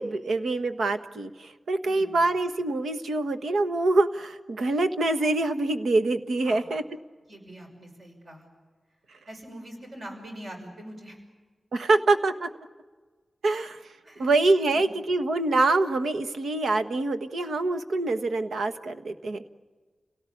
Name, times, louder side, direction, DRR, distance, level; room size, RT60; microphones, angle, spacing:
voice 1, 0.0-6.8 11.7-12.5 13.4-13.8 14.2-19.5, right 2 dB, 85° right, 9 dB, 1.3 m, -25 dB
voice 2, 1.8-2.2 6.4-6.7 7.3-8.5 9.3-11.2 14.0-14.4 14.7-14.9, right 1 dB, 55° right, 2 dB, 6.2 m, -43 dB
29.5 x 18.0 x 8.6 m, 1.4 s
wide cardioid pair, 100°, 0 cm